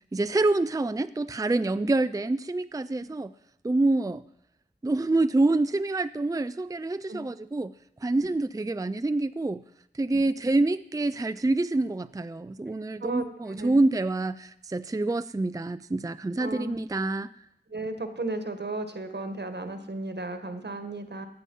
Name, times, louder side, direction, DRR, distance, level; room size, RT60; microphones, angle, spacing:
voice 1, 0.1-3.3 3.6-4.2 4.8-7.7 8.0-9.6 9.9-17.3, right 2 dB, 20° right, 13 dB, 0.4 m, -26 dB
voice 2, 13.0-13.8 16.4-16.8 17.7-21.3, right 2 dB, 75° right, 8 dB, 1.5 m, -34 dB
15.5 x 9.9 x 5.4 m, 0.75 s
wide cardioid pair, 50°, 18 cm